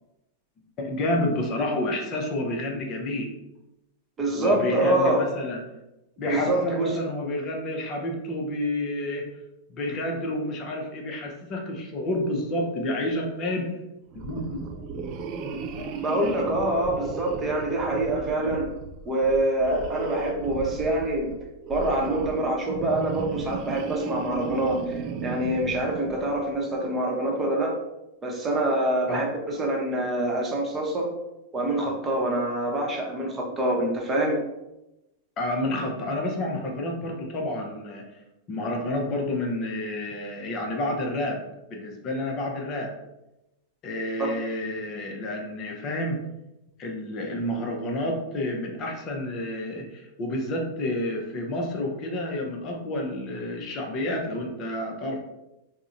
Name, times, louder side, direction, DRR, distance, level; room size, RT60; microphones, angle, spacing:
voice 1, 0.8-3.3 4.3-5.6 6.2-9.3 9.7-13.7 14.1-15.1 15.3-15.8 29.1-29.2 35.4-38.0 38.5-41.4 41.7-42.9 43.8-46.2 46.8-55.2, left 1 dB, 35° left, 0 dB, 0.6 m, -29 dB
voice 2, 4.2-5.3 6.3-6.9 16.0-18.7 19.0-21.3 21.7-27.8 28.2-31.1 31.5-34.4, right 1 dB, 20° right, -1 dB, 0.8 m, -25 dB
sound 1, 14.1-26.6, right 5 dB, 40° right, 0.3 m, -35 dB
3.6 x 2.1 x 2.5 m, 0.93 s
figure-of-eight pair, 95°, 0 cm